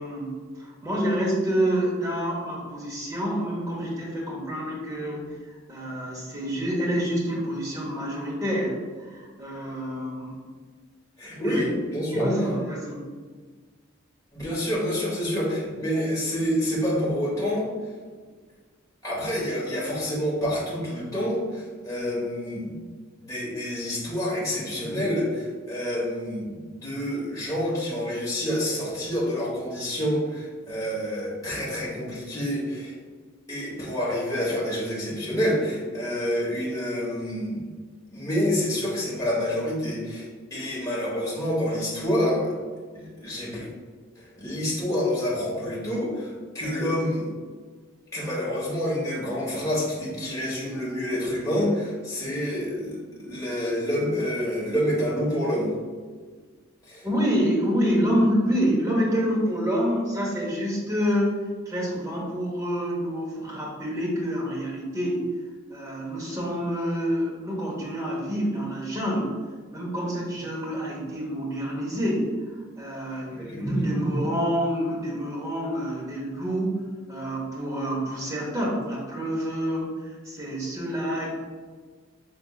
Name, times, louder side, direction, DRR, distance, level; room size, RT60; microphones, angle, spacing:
voice 1, 0.0-10.3 11.4-11.7 12.1-13.0 57.0-61.3 61.7-65.2 65.7-69.3 69.7-76.8 77.1-81.4, equal, 15° right, -4 dB, 1.0 m, -27 dB
voice 2, 11.2-12.3 14.3-17.7 19.0-22.8 23.2-32.9 33.5-37.7 38.1-42.5 42.9-43.7 44.4-47.3 48.1-55.7 56.9-57.1 73.4-73.6 73.9-74.0, equal, 15° left, -6 dB, 1.2 m, -28 dB
5.5 x 3.4 x 2.4 m, 1.5 s
head